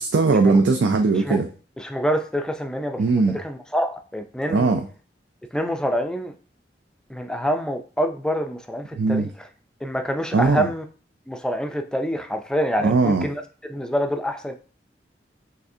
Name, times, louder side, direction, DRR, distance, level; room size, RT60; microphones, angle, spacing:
voice 1, 0.0-1.5 3.0-3.4 4.5-4.9 8.9-9.3 10.3-10.7 12.8-13.3, right 3 dB, 85° right, 6 dB, 0.4 m, -19 dB
voice 2, 1.8-4.7 5.5-6.3 7.1-9.3 9.8-10.8 11.3-13.4 13.7-14.5, equal, 5° left, 6 dB, 0.4 m, -26 dB
5.9 x 3.3 x 2.7 m, 0.39 s
head